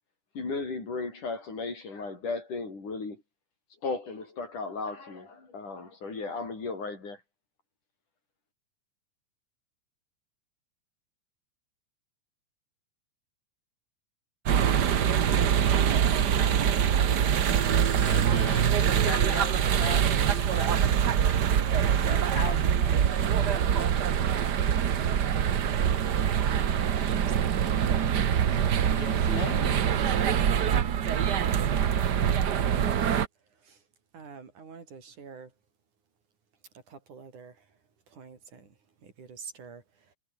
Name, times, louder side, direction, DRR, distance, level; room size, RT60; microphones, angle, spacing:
voice 1, 0.4-3.2 3.8-7.2, left 3 dB, 90° left, 8.8 m, -35 dB
sound 1, 14.5-33.3, right 8 dB, 55° right, 1.2 m, -24 dB
voice 2, 17.0-20.8 21.7-24.3 28.6-30.3, left 5 dB, 65° left, 6.0 m, -40 dB
voice 3, 26.9-28.2 32.7-33.0 33.5-33.8 34.1-35.5 36.9-37.8 38.1-40.2, right 5 dB, 80° right, 5.8 m, -48 dB
omnidirectional pair, 3.5 m